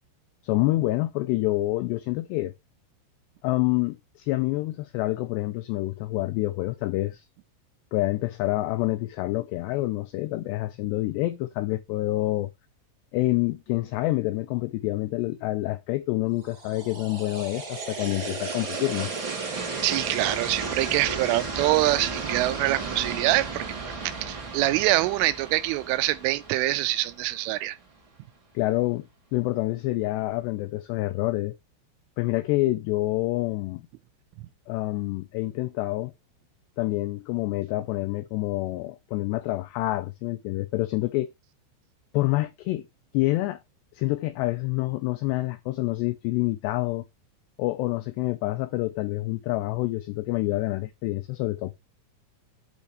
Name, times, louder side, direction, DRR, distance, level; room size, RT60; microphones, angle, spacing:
voice 1, 0.4-2.5 3.4-7.3 7.9-12.5 13.1-19.1 28.6-29.1 29.3-31.5 32.2-33.9 34.7-36.1 36.8-41.3 42.1-42.8 43.1-43.6 43.9-47.1 47.6-51.7, left 18 dB, 90° left, 2.4 m, -27 dB
sound 1, 16.4-27.5, right 4 dB, 35° right, 2.3 m, -34 dB
voice 2, 19.8-23.7 24.0-27.8, right 17 dB, 85° right, 3.2 m, -25 dB
8.4 x 8.4 x 3.1 m
omnidirectional pair, 5.6 m